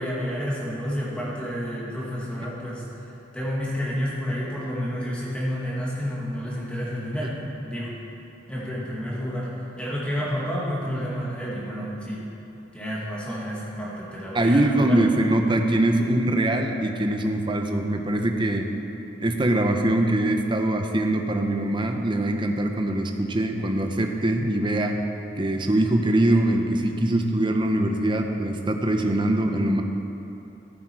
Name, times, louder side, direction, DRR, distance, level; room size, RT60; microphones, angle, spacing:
voice 1, 0.0-2.8 3.3-8.0 8.5-12.3 12.7-15.2, equal, 5° left, -7 dB, 2.3 m, -30 dB
voice 2, 14.3-18.7 19.2-25.0 25.4-29.8, right 1 dB, 25° right, 4 dB, 0.8 m, -23 dB
14.5 x 8.3 x 4.8 m, 3.0 s
head